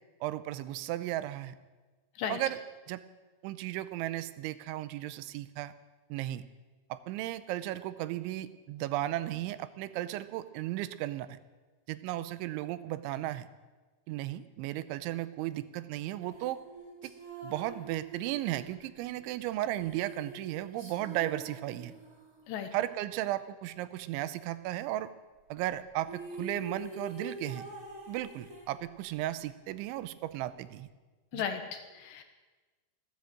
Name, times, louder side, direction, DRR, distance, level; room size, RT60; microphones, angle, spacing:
voice 1, 0.2-1.6 2.3-2.6 2.9-3.0 3.4-5.7 6.1-6.4 6.9-11.3 11.9-13.5 14.1-16.6 17.0-17.1 17.4-21.9 22.7-25.1 25.5-27.7 28.1-30.9 31.3-31.4, right 14 dB, 80° right, 14 dB, 3.0 m, -35 dB
sound 1, 16.3-22.5 25.7-25.8 26.0-29.2, right 1 dB, 25° right, 2.3 m, -46 dB
voice 2, 31.3-32.2, left 8 dB, 75° left, 6 dB, 3.1 m, -35 dB
15.0 x 12.5 x 7.7 m, 1.3 s
omnidirectional pair, 5.5 m